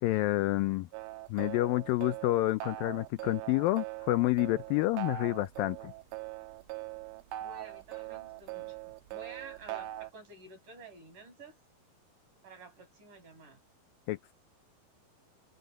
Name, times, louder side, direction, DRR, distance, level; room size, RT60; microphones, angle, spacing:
voice 1, 0.0-0.9 1.3-5.9 14.1-14.3, left 18 dB, 80° left, 2.2 m, -29 dB
sound 1, 0.9-10.1, right 16 dB, 75° right, 2.7 m, -41 dB
voice 2, 7.4-11.6 12.4-13.6, right 4 dB, 55° right, 8.3 m, -51 dB
omnidirectional pair, 4.4 m